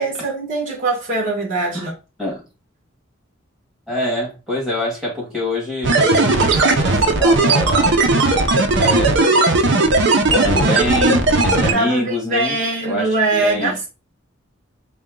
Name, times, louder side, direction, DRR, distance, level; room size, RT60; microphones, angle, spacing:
voice 1, 0.0-1.9 11.6-13.9, right 2 dB, 40° right, 1.4 m, -22 dB
voice 2, 3.9-8.0 8.8-9.4 10.3-12.6 12.8-13.8, left 1 dB, ahead, 1.7 m, -25 dB
sound 1, 5.8-11.7, right 2 dB, 60° right, 0.7 m, -16 dB
4.2 x 2.3 x 3.7 m
head